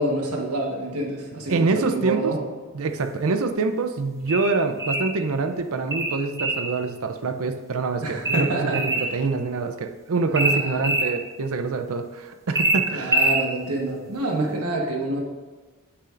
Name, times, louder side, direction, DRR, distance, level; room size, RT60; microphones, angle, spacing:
voice 1, 0.0-2.4 8.0-9.1 10.3-10.9 12.9-15.2, right 2 dB, 85° right, 0 dB, 1.2 m, -27 dB
voice 2, 1.5-2.3 2.7-13.1, right 3 dB, 70° right, 8 dB, 0.5 m, -25 dB
sound 1, 4.3-5.1 5.9-6.7 8.2-9.1 10.3-11.1 12.5-13.4, right 2 dB, 15° right, 0.7 m, -23 dB
8.2 x 5.7 x 2.5 m, 1.3 s
head